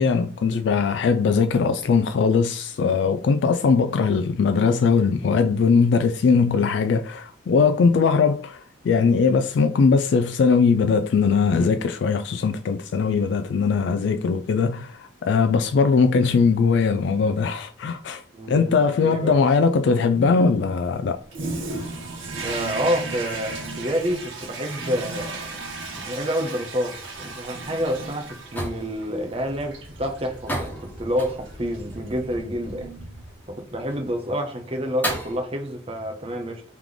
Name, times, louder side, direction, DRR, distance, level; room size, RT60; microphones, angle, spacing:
voice 1, 0.0-21.2, left 5 dB, 60° left, 0.3 m, -20 dB
voice 2, 18.3-19.4 22.3-25.5 26.0-32.9 33.5-36.6, equal, 30° right, 0.7 m, -28 dB
Toilet flush, 21.3-33.6, right 3 dB, 75° right, 1.4 m, -35 dB
sound 1, 26.8-35.4, right 1 dB, 10° left, 1.1 m, -36 dB
3.5 x 3.1 x 3.8 m
head